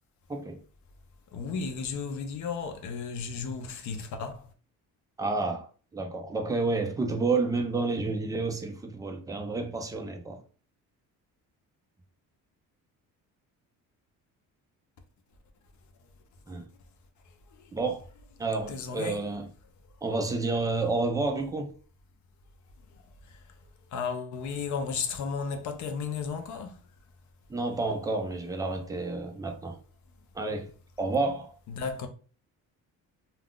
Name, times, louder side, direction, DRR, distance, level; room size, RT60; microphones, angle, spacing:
voice 1, 0.3-0.6 5.2-5.7 5.9-10.4 16.5-16.7 17.7-18.0 18.4-19.5 20.0-21.7 27.5-29.8 30.3-30.7 31.0-31.5, right 3 dB, 10° right, 0.3 m, -30 dB
voice 2, 1.3-4.5 17.5-17.8 18.7-19.2 23.3-23.4 23.9-26.8 31.7-32.1, left 5 dB, 55° left, 0.6 m, -34 dB
2.4 x 2.3 x 3.6 m
cardioid pair, 150°, 35 cm